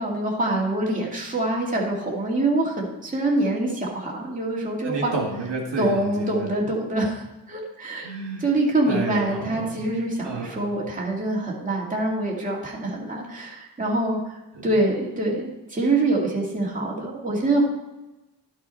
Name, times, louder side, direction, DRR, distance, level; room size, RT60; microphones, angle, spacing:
voice 1, 0.0-5.1 5.8-8.1 8.4-14.3 14.6-17.7, right 2 dB, 20° right, -3 dB, 2.2 m, -25 dB
voice 2, 4.8-6.5 8.0-8.4 8.9-9.7 10.2-10.7, right 3 dB, 75° right, 1 dB, 2.1 m, -30 dB
11.5 x 6.3 x 4.1 m, 1.0 s
wide cardioid pair, 125°, 43 cm